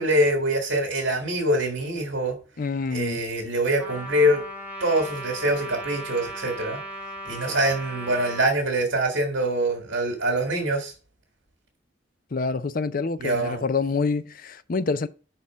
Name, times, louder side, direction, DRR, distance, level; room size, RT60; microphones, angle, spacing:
voice 1, 0.0-2.4 2.9-4.4 4.8-6.8 7.3-10.9 13.2-13.6, right 1 dB, 75° right, 1.7 m, -24 dB
voice 2, 2.6-3.2 12.3-15.1, left 4 dB, 45° left, 0.5 m, -27 dB
Trumpet, 3.8-8.5, equal, 10° right, 1.3 m, -36 dB
5.4 x 4.3 x 6.1 m
head